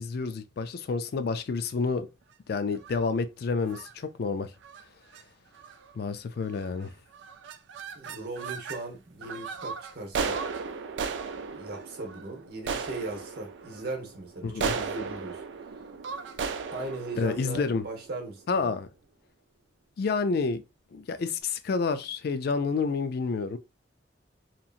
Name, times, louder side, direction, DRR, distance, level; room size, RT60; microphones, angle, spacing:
voice 1, 0.0-2.1 2.5-4.5 6.0-6.9 14.4-14.7 17.2-17.8 18.5-18.9 20.0-20.6 20.9-23.6, left 4 dB, 60° left, 0.4 m, -29 dB
sound 1, 2.8-3.1 3.7-3.9 4.6-4.8 5.1-5.2 5.6-6.0 6.5-6.9 7.1-8.8 9.2-18.4, right 5 dB, 80° right, 0.4 m, -36 dB
voice 2, 7.9-10.4 11.5-15.4 16.7-18.8, right 2 dB, 60° right, 1.0 m, -38 dB
2.9 x 2.7 x 2.4 m
head